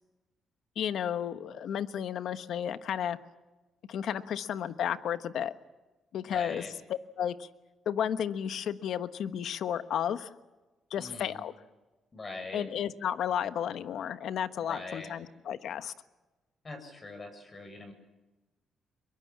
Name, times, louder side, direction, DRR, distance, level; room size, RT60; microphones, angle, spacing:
voice 1, 0.8-3.2 3.9-5.5 6.1-7.5 7.8-10.3 10.9-11.5 12.5-15.9, left 9 dB, 70° left, 11 dB, 1.2 m, -33 dB
voice 2, 6.2-6.7 11.0-11.4 12.1-12.6 14.6-15.1 16.6-17.9, left 3 dB, 30° left, 5 dB, 7.7 m, -42 dB
23.5 x 23.0 x 7.3 m, 1.1 s
cardioid pair, 90°, 0 cm